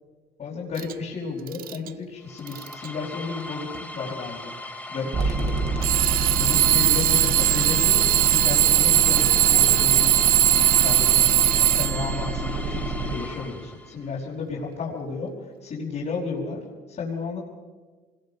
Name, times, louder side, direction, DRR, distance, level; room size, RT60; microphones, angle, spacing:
voice 1, 0.4-5.8 6.3-17.4, left 4 dB, 50° left, -5 dB, 5.2 m, -33 dB
Alarm / Clock, 0.8-0.9 1.5-1.9 2.5-2.9 3.7-3.8 5.8-12.2, right 14 dB, 60° right, 0.6 m, -20 dB
sound 1, 2.2-14.1, left 2 dB, 10° left, 3.3 m, -38 dB
sound 2, 5.1-13.1, right 3 dB, 40° right, 5.0 m, -28 dB
25.5 x 21.5 x 5.5 m, 1.4 s
cardioid pair, 110°, 17 cm